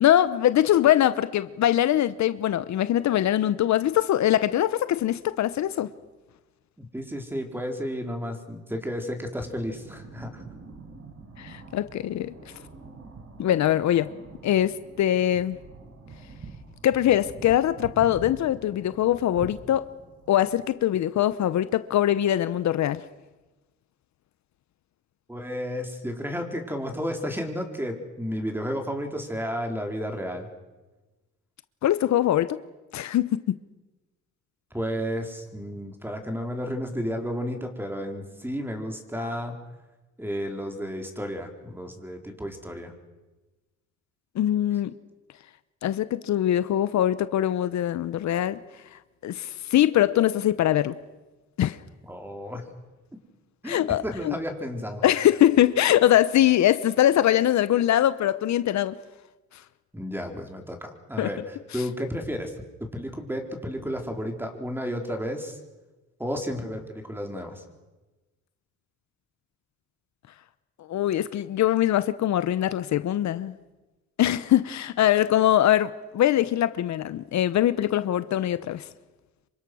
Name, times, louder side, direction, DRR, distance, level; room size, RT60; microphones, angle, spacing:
voice 1, 0.0-5.9 11.4-12.3 13.4-14.1 14.4-15.6 16.8-19.9 20.3-23.1 31.8-32.6 32.9-33.4 44.4-44.9 45.8-48.6 48.9-51.0 51.6-51.8 53.6-54.3 55.0-59.0 61.2-61.3 70.9-73.5 74.2-78.9, left 12 dB, 65° left, 0.8 m, -22 dB
voice 2, 6.8-10.4 25.3-30.5 34.7-39.6 40.2-43.0 52.0-52.6 53.6-55.0 59.9-62.5 62.8-65.6 66.2-67.6, equal, 5° right, 4.3 m, -32 dB
sound 1, 9.7-20.6, right 4 dB, 50° right, 5.0 m, -45 dB
27.5 x 24.5 x 6.3 m
cardioid pair, 90°, 30 cm